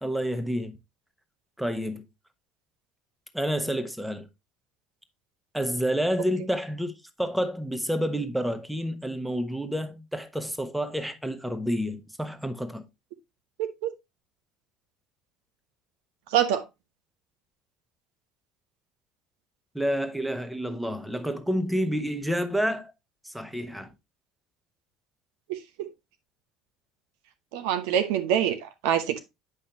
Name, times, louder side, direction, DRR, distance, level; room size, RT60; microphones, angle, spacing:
voice 1, 0.0-0.8 1.6-2.0 3.3-4.3 5.5-6.9 7.2-12.8 19.7-22.9 23.2-23.9, equal, 5° right, 1.1 m, -29 dB
voice 2, 16.3-16.6 25.5-25.9 27.5-29.2, right 10 dB, 65° right, 0.8 m, -25 dB
8.6 x 5.4 x 2.9 m
figure-of-eight pair, 60°, 0 cm